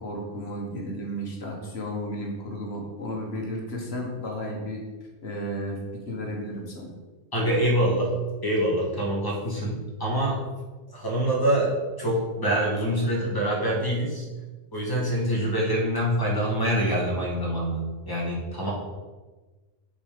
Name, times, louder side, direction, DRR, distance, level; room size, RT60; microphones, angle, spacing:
voice 1, 0.0-4.8 5.2-5.8 6.1-6.9, equal, 60° left, 0 dB, 1.6 m, -33 dB
voice 2, 7.3-10.4 10.9-14.3 14.7-18.7, right 1 dB, 20° left, -3 dB, 1.8 m, -25 dB
6.8 x 4.5 x 5.2 m, 1.2 s
omnidirectional pair, 1.2 m